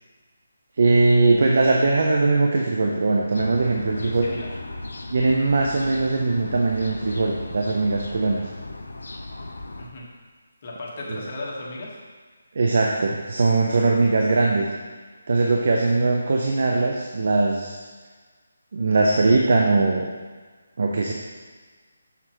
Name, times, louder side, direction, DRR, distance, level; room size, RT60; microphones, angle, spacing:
voice 1, 0.8-4.3 5.1-8.5 11.1-11.2 12.5-14.7 15.3-17.8 18.7-20.1 20.8-21.1, right 3 dB, 55° right, 0 dB, 0.7 m, -20 dB
sound 1, 3.3-9.9, left 2 dB, 70° left, 0.7 m, -36 dB
voice 2, 4.0-4.5 9.8-10.1 10.6-12.0, left 2 dB, 40° left, -3 dB, 1.5 m, -36 dB
6.8 x 6.7 x 3.1 m, 1.4 s
figure-of-eight pair, 150°, 0 cm